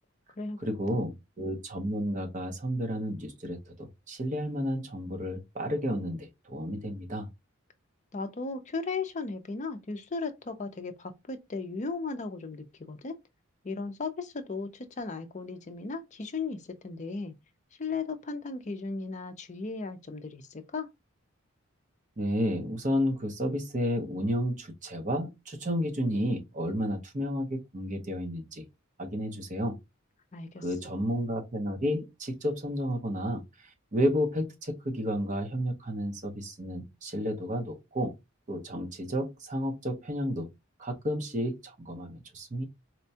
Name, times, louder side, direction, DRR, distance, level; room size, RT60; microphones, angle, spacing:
voice 1, 0.6-7.3 22.2-28.6 29.0-29.8 30.6-38.1 38.5-40.5 40.8-42.6, equal, 35° right, 0.7 m, -31 dB
voice 2, 8.1-13.2 13.6-17.3 17.8-20.9 30.3-30.6, left 4 dB, 35° left, 0.5 m, -36 dB
4.3 x 2.2 x 2.7 m
head